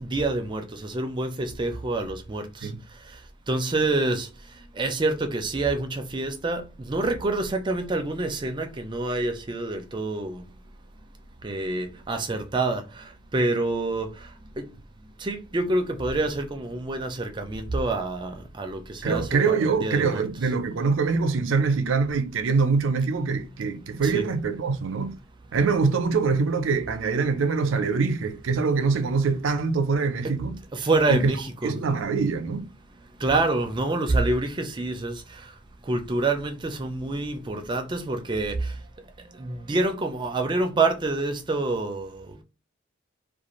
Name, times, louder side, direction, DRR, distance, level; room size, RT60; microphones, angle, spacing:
voice 1, 0.0-2.4 3.5-4.3 4.8-6.6 6.9-10.4 11.4-12.8 13.3-14.1 14.6-14.7 15.2-20.2 24.0-24.2 30.7-31.7 33.2-35.1 35.9-38.5 39.4-42.1, right 2 dB, 25° right, 0.4 m, -27 dB
voice 2, 19.0-25.2 25.5-30.6 31.1-31.3 31.6-32.7, right 4 dB, 85° right, 0.5 m, -24 dB
2.4 x 2.3 x 2.9 m
head